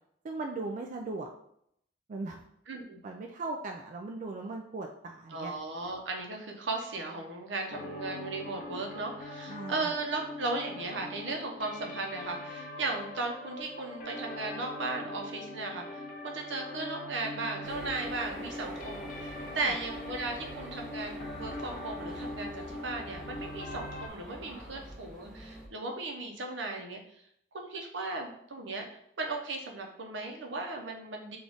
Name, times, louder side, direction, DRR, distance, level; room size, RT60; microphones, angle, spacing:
voice 1, 0.2-1.3 2.1-2.4 3.0-5.5 9.5-9.9 19.6-19.7, right 3 dB, 45° right, 2 dB, 0.3 m, -38 dB
voice 2, 2.7-3.0 5.3-27.0 27.5-28.9 29.2-31.4, right 3 dB, 75° right, 2 dB, 0.7 m, -36 dB
sound 1, 7.7-24.1, left 2 dB, 50° left, 0.5 m, -42 dB
sound 2, 17.6-25.7, equal, ahead, 0.7 m, -46 dB
3.5 x 2.4 x 3.8 m, 0.72 s
head